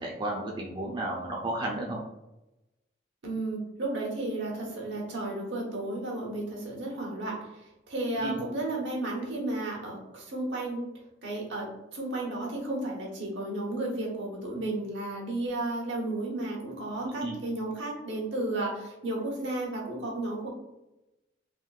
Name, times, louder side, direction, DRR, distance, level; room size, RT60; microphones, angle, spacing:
voice 1, 0.0-2.0 8.2-8.4 17.0-17.4, right 1 dB, 25° right, -3 dB, 0.4 m, -33 dB
voice 2, 3.2-10.8 11.2-20.5, right 2 dB, 75° right, -2 dB, 1.0 m, -33 dB
3.5 x 2.5 x 2.3 m, 0.94 s
head